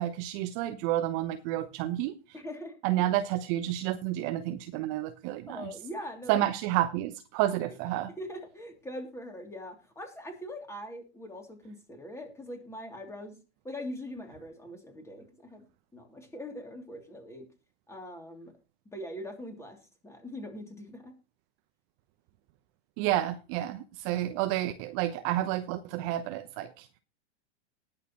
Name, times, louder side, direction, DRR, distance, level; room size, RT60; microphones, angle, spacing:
voice 1, 0.0-2.1 2.8-5.7 6.3-8.1 23.0-26.9, right 13 dB, 40° right, 1.0 m, -30 dB
voice 2, 2.3-3.0 5.5-6.4 8.2-13.4 13.6-15.6 15.9-17.5 17.9-18.5 18.9-21.1, left 1 dB, 10° left, 2.9 m, -42 dB
19.5 x 6.7 x 3.1 m
hypercardioid pair, 105°, 35 cm